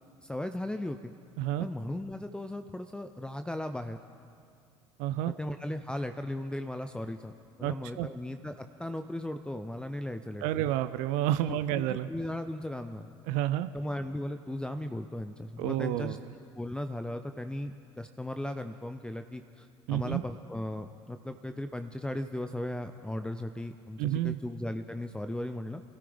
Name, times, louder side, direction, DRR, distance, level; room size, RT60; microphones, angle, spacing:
voice 1, 0.2-1.1 1.6-4.0 5.4-10.7 11.5-13.1 13.7-16.2 16.6-25.8, left 1 dB, 5° left, 8 dB, 0.6 m, -37 dB
voice 2, 5.0-5.3 7.6-8.1 10.4-12.1 13.3-13.7 15.6-16.2 19.9-20.2 24.0-24.4, right 13 dB, 60° right, 13 dB, 0.5 m, -30 dB
25.5 x 13.5 x 3.5 m, 2.5 s
figure-of-eight pair, 60°, 14 cm